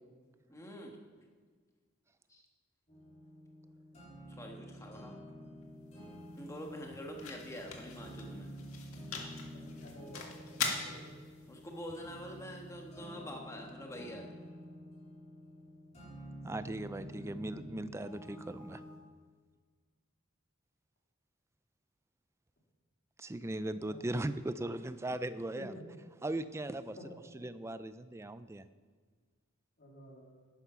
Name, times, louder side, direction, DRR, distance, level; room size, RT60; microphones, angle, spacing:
voice 1, 0.5-1.0 2.3-2.4 4.3-5.2 6.4-8.5 11.5-14.3, equal, 15° left, 1 dB, 1.4 m, -45 dB
sound 1, 2.9-19.0, equal, 30° left, 3.9 m, -49 dB
sound 2, 5.6-13.7, left 5 dB, 85° left, 1.7 m, -44 dB
voice 2, 7.6-8.1 9.5-11.0 23.5-24.0 25.6-25.8 26.9-27.3 29.8-30.5, equal, 50° left, -3 dB, 2.7 m, -52 dB
voice 3, 16.4-18.8 23.2-25.7 26.2-27.0 27.3-28.7, right 1 dB, 15° right, 13 dB, 0.3 m, -38 dB
10.5 x 9.3 x 5.7 m, 1.5 s
head